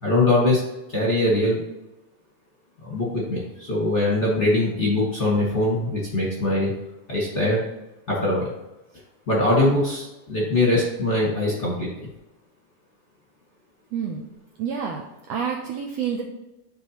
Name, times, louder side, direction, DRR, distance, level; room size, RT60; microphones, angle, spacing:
voice 1, 0.0-0.6 0.9-1.6 2.8-6.7 7.1-7.6 8.1-8.5 9.3-11.9, left 2 dB, 35° left, -6 dB, 1.1 m, -22 dB
voice 2, 13.9-14.2 14.6-15.0 15.3-16.2, right 7 dB, 80° right, 1 dB, 1.5 m, -28 dB
11.0 x 4.1 x 2.9 m, 0.99 s
omnidirectional pair, 3.6 m